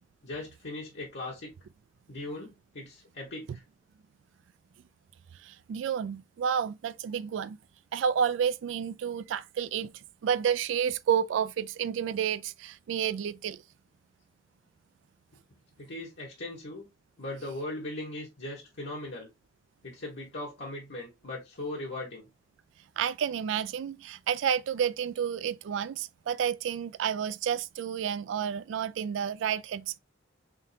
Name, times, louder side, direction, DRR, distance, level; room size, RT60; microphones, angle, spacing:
voice 1, 0.2-1.5 2.1-3.6 15.8-16.9 17.2-19.3 19.8-22.3, left 2 dB, 70° left, 1.2 m, -39 dB
voice 2, 5.4-7.6 7.9-9.9 10.2-13.6 23.0-30.0, right 8 dB, 70° right, 0.3 m, -30 dB
3.6 x 3.6 x 2.7 m
head